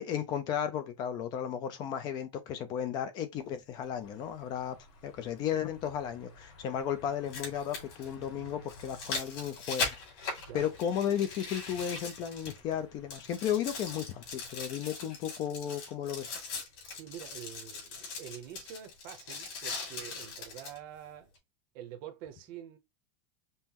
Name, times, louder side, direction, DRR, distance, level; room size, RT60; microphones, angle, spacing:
voice 1, 0.0-4.8 5.0-16.3, left 9 dB, 25° left, 0.4 m, -34 dB
sound 1, 3.8-3.9 5.9-6.0 7.1-12.8 13.1-20.8 21.4-21.5, left 4 dB, 50° left, 2.4 m, -40 dB
sound 2, 4.0-14.7, left 3 dB, 70° left, 2.0 m, -56 dB
voice 2, 16.8-21.3 21.7-22.8, right 10 dB, 45° right, 0.7 m, -46 dB
5.4 x 2.0 x 2.9 m
supercardioid pair, 175°, 16 cm